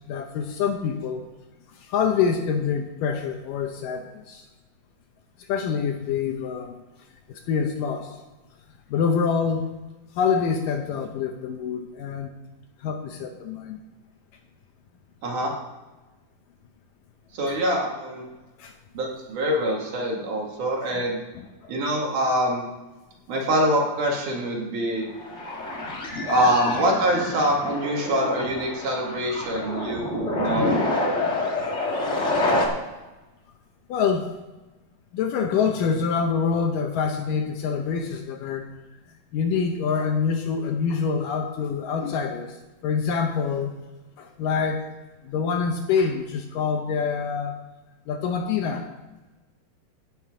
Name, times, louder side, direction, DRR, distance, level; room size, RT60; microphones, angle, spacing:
voice 1, 0.1-1.2 1.8-4.4 5.5-6.8 7.3-8.2 8.9-9.7 10.2-12.3 12.8-13.8 17.5-17.6 18.6-18.7 20.9-21.0 21.4-21.7 25.4-25.6 31.6-31.7 32.5-32.6 33.9-34.3 35.1-38.7 39.3-42.6 42.8-43.8 44.2-44.9 45.2-47.6 48.1-48.9, left 6 dB, 75° left, 5 dB, 2.2 m, -26 dB
voice 2, 15.2-15.5 17.3-18.3 18.9-21.2 21.7-22.6 23.3-25.0 26.3-31.1, equal, 60° right, -1 dB, 3.3 m, -25 dB
sound 1, 25.1-32.7, left 2 dB, 55° left, 0.7 m, -27 dB
16.5 x 6.1 x 5.0 m, 1.1 s
omnidirectional pair, 4.4 m